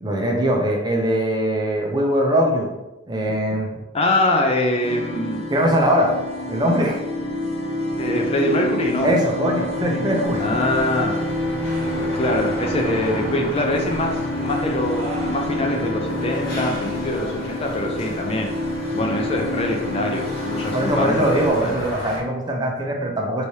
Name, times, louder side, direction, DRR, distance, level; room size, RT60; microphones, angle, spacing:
voice 1, 0.0-2.7 3.1-3.7 5.5-6.2 6.5-7.0 9.0-10.5 20.7-23.5, equal, 20° right, 0 dB, 0.6 m, -21 dB
voice 2, 3.9-5.4 8.0-9.1 10.4-11.2 11.6-18.5 18.9-21.8, left 1 dB, 30° left, 2 dB, 0.4 m, -24 dB
sound 1, 4.8-21.5, left 1 dB, 75° left, 1.0 m, -27 dB
sound 2, 10.2-22.2, equal, 55° left, 1.2 m, -34 dB
4.6 x 3.2 x 2.7 m, 0.97 s
head